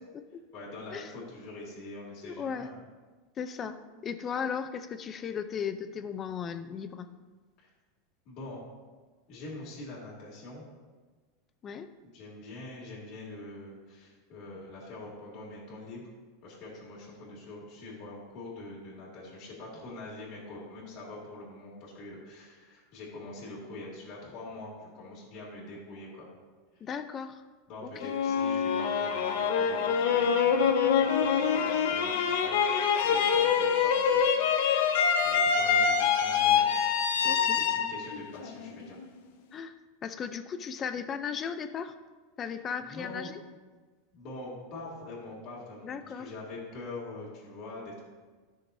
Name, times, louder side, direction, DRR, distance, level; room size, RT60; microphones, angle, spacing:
voice 1, 0.5-2.7 7.6-7.7 8.2-8.6 9.3-10.6 12.0-16.0 16.4-26.3 27.7-32.6 33.0-34.8 35.2-36.7 37.1-39.0 42.8-43.3 44.1-48.0, left 2 dB, 45° left, -6 dB, 2.7 m, -44 dB
voice 2, 2.2-2.7 3.4-7.1 11.6-11.9 26.8-27.4 27.8-28.1 37.2-37.6 39.5-39.7 40.0-41.9 42.4-43.4 45.8-46.3, left 7 dB, 25° left, 10 dB, 0.5 m, -36 dB
sound 1, 28.0-39.0, left 7 dB, 70° left, 0.9 m, -25 dB
14.5 x 6.4 x 2.7 m, 1.4 s
supercardioid pair, 155°, 0 cm